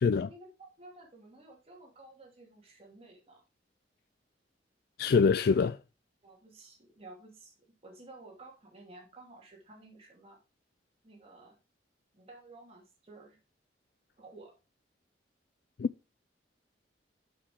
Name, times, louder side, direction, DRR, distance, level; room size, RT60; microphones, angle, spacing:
voice 1, 0.2-3.4 6.2-7.5 7.8-10.4 11.0-11.6 12.1-13.4 14.2-14.6, right 2 dB, 35° right, 2.5 m, -53 dB
voice 2, 5.0-5.8 15.8-15.9, left 5 dB, 60° left, 0.3 m, -24 dB
7.5 x 6.5 x 3.5 m
head